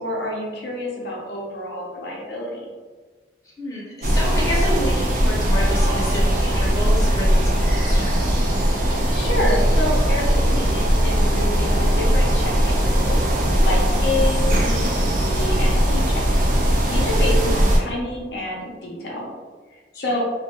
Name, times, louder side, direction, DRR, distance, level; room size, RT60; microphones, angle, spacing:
voice 1, 0.0-2.7 8.9-16.3 16.9-19.3 19.7-20.2, left 1 dB, 70° left, -2 dB, 0.5 m, -28 dB
voice 2, 3.4-8.4 17.4-17.6 19.9-20.0, equal, 20° left, -6 dB, 0.6 m, -30 dB
sound 1, 4.0-17.8, equal, 50° right, 0.4 m, -19 dB
2.3 x 2.1 x 2.8 m, 1.4 s
head